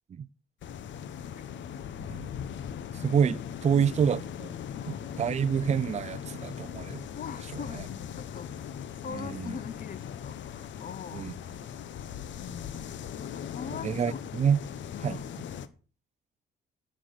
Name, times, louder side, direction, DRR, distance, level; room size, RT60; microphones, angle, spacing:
sound 1, 0.6-15.7, left 9 dB, 70° left, 1.0 m, -39 dB
voice 1, 2.9-4.5 4.9-7.1 7.5-7.8 9.1-9.6 11.1-11.3 13.8-14.6 15.0-15.2, right 7 dB, 35° right, 0.5 m, -28 dB
voice 2, 4.7-5.2 7.1-8.6 9.0-11.7 12.4-14.2 14.9-15.5, left 7 dB, 45° left, 0.9 m, -42 dB
11.5 x 7.4 x 6.6 m
cardioid pair, 90°, 20 cm